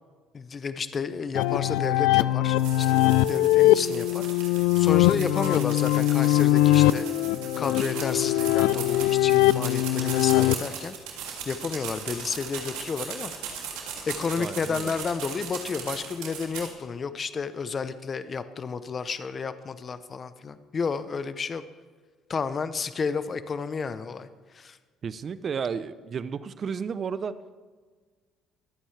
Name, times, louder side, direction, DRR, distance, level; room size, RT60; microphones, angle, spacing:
voice 1, 0.3-3.0 3.3-7.1 7.6-11.0 11.4-13.3 13.6-13.7 14.1-21.6 22.3-24.8, left 5 dB, 40° left, 12 dB, 0.8 m, -31 dB
sound 1, 1.4-10.5, left 15 dB, 85° left, 0.3 m, -22 dB
sound 2, 2.6-16.7, right 8 dB, 85° right, 2.8 m, -38 dB
voice 2, 14.4-14.9 25.0-27.4, right 6 dB, 45° right, 14 dB, 0.7 m, -32 dB
24.0 x 8.9 x 3.4 m, 1.5 s
supercardioid pair, 80°, 0 cm